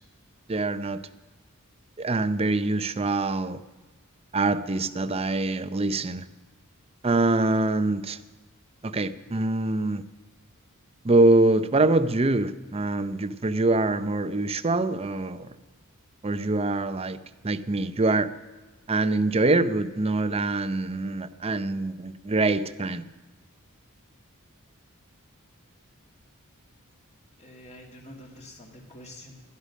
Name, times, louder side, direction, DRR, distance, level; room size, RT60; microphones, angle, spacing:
voice 1, 0.5-1.0 2.0-3.6 4.3-6.3 7.0-8.2 8.8-10.0 11.0-15.5 16.2-17.2 17.4-18.3 18.9-23.0, right 2 dB, 25° right, 12 dB, 0.6 m, -24 dB
voice 2, 27.4-29.4, left 1 dB, 30° left, 0 dB, 2.4 m, -46 dB
17.0 x 11.5 x 6.4 m, 1.3 s
head